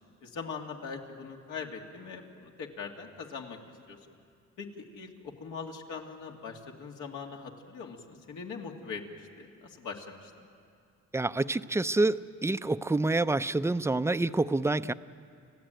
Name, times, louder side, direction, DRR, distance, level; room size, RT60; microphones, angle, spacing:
voice 1, 0.2-3.6 3.9-4.1 4.6-10.5, left 5 dB, 80° left, 1 dB, 2.4 m, -41 dB
voice 2, 11.1-14.9, right 2 dB, 10° right, 13 dB, 0.5 m, -27 dB
29.5 x 15.0 x 9.1 m, 2.4 s
cardioid pair, 90°, 30 cm